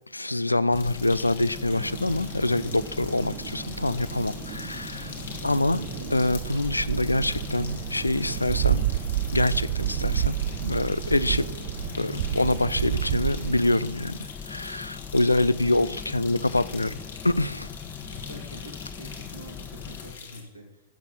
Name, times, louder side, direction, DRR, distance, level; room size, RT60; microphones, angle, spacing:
voice 1, 0.1-5.1 5.4-5.8 6.1-8.8 9.3-10.4 10.6-11.5 12.0-14.2 14.4-17.0 17.2-17.7, left 2 dB, 85° left, 0.5 m, -25 dB
sound 1, 0.7-20.4, left 5 dB, 65° left, 2.2 m, -44 dB
Boat Water vehicle, 0.7-20.1, left 7 dB, 25° left, 1.2 m, -40 dB
sound 2, 1.7-13.8, right 13 dB, 50° right, 0.4 m, -31 dB
voice 2, 5.3-5.6 15.4-15.9 16.8-17.1 18.1-20.8, equal, 85° right, 2.6 m, -46 dB
13.5 x 7.2 x 7.2 m
figure-of-eight pair, 90°, 0 cm